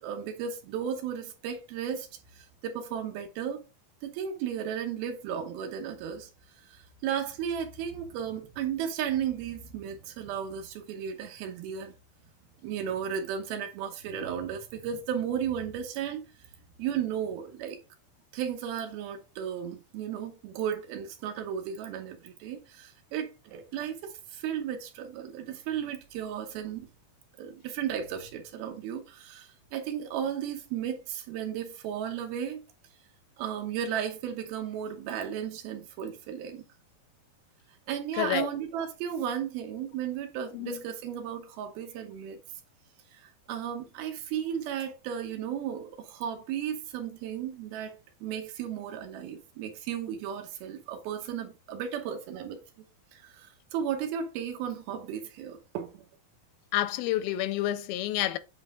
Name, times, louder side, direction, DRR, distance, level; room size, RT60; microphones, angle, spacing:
voice 1, 0.0-2.1 2.3-3.6 4.0-6.3 6.6-11.9 12.6-16.2 16.8-17.8 18.3-26.9 27.4-32.6 33.4-36.6 37.9-42.4 43.1-52.6 53.1-56.0, right 8 dB, 90° right, 2.9 m, -34 dB
voice 2, 38.2-38.5 40.5-40.8 56.7-58.4, left 14 dB, 90° left, 2.4 m, -29 dB
7.9 x 4.2 x 3.6 m
omnidirectional pair, 4.2 m